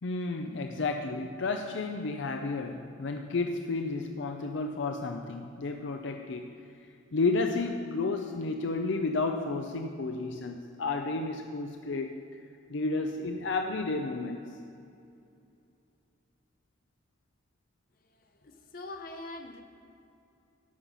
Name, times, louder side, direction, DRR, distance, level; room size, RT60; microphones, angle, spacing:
voice 1, 0.0-6.5 7.1-12.2 12.7-14.4, left 3 dB, 70° left, 5 dB, 0.5 m, -32 dB
voice 2, 18.0-19.6, left 2 dB, 45° left, 5 dB, 0.9 m, -44 dB
13.0 x 5.7 x 5.3 m, 2.6 s
head